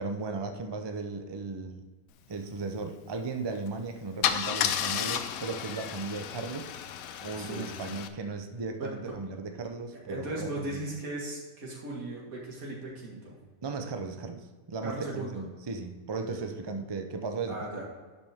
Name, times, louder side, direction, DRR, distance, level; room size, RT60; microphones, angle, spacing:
voice 1, 0.0-1.8 2.3-6.7 7.2-10.8 13.6-17.8, right 4 dB, 35° right, 5 dB, 0.4 m, -36 dB
Car / Engine starting / Idling, 3.5-3.7 4.2-8.1, left 9 dB, 85° left, 1.0 m, -32 dB
voice 2, 7.4-7.7 8.8-8.9 10.1-13.4 14.8-15.4 16.3-16.6 17.5-17.9, right 2 dB, 90° right, -4 dB, 2.4 m, -37 dB
11.0 x 5.4 x 3.5 m, 1.4 s
omnidirectional pair, 1.4 m